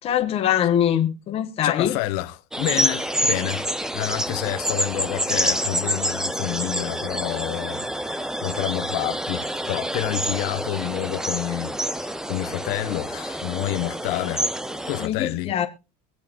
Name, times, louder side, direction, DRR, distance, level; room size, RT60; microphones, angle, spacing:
voice 1, 0.0-1.9 15.0-15.7, left 10 dB, 40° left, 1.8 m, -23 dB
voice 2, 1.6-7.9 8.4-14.5 14.9-15.5, left 16 dB, 75° left, 1.1 m, -29 dB
sound 1, 2.5-15.1, right 1 dB, 5° right, 0.9 m, -27 dB
23.5 x 8.4 x 2.7 m
cardioid pair, 135°, 15 cm